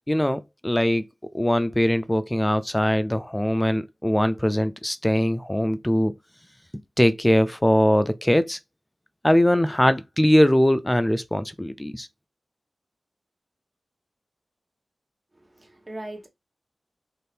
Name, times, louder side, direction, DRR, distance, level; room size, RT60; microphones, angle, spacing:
voice 1, 0.1-1.0 1.3-6.1 7.0-8.6 9.2-12.1, equal, 15° left, 0.3 m, -21 dB
voice 2, 15.3-16.3, right 1 dB, 35° right, 1.0 m, -39 dB
2.7 x 2.5 x 3.3 m
cardioid pair, 55°, 0 cm